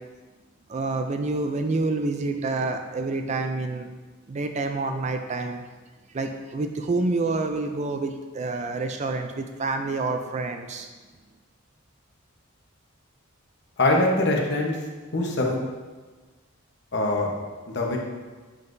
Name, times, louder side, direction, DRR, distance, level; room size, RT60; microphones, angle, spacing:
voice 1, 0.7-3.9 4.3-5.6 6.1-10.9, right 3 dB, 30° right, 6 dB, 0.3 m, -28 dB
voice 2, 13.8-14.8 15.1-15.6 16.9-17.3 17.7-18.0, left 2 dB, 55° left, -1 dB, 1.0 m, -23 dB
7.5 x 5.6 x 2.6 m, 1.3 s
head